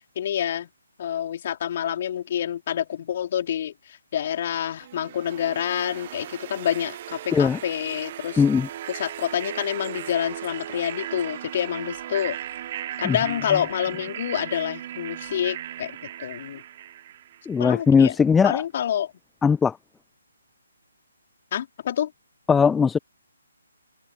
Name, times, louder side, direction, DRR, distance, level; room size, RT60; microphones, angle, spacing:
voice 1, 0.1-0.7 1.0-8.4 8.9-12.4 13.0-16.6 17.6-18.1 18.4-19.1 21.5-22.1, left 10 dB, 40° left, 4.6 m, -27 dB
sound 1, 4.8-17.7, right 12 dB, 35° right, 1.3 m, -37 dB
voice 2, 8.4-8.7 13.0-13.2 17.5-18.6 19.4-19.8 22.5-23.0, left 6 dB, 10° left, 0.7 m, -19 dB
figure-of-eight pair, 140°, 0 cm